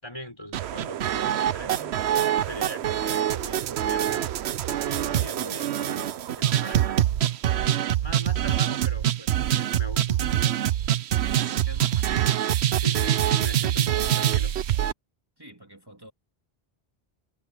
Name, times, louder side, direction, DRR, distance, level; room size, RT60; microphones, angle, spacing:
voice 1, 0.0-1.9 2.4-4.3 4.8-7.0 7.9-10.7 12.8-14.6, equal, 25° left, 6.2 m, -41 dB
sound 1, 0.5-14.9, right 11 dB, 85° right, 0.9 m, -25 dB
voice 2, 11.5-12.4 15.4-16.1, right 1 dB, 20° right, 2.9 m, -47 dB
omnidirectional pair, 1.1 m